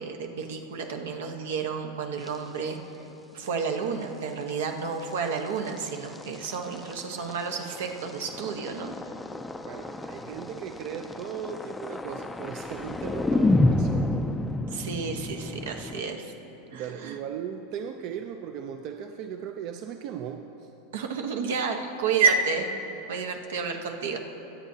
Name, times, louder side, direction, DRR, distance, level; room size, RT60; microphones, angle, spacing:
voice 1, 0.0-2.8 3.3-8.9 14.7-16.3 16.7-17.2 20.9-22.7 23.1-24.2, right 5 dB, 85° right, 4 dB, 1.1 m, -30 dB
sound 1, 2.2-2.4 3.5-3.6 4.0-4.1 5.1-16.0, left 2 dB, 10° left, 0.4 m, -30 dB
voice 2, 9.7-14.1 16.7-20.7, right 8 dB, 50° right, 6 dB, 0.5 m, -37 dB
23.5 x 8.1 x 2.8 m, 2.9 s
supercardioid pair, 130°, 0 cm